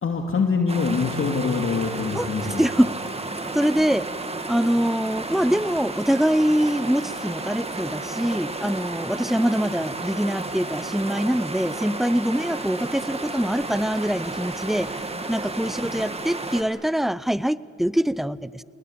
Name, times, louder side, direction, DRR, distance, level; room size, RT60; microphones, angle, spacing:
voice 1, 0.0-2.6, left 5 dB, 45° left, 3 dB, 2.4 m, -24 dB
sound 1, 0.7-16.6, right 2 dB, 20° right, 2.3 m, -32 dB
voice 2, 2.1-2.9 3.5-4.1 4.5-14.9 15.3-18.6, equal, ahead, 18 dB, 0.5 m, -24 dB
28.5 x 19.5 x 8.7 m, 2.8 s
cardioid pair, 90°, 30 cm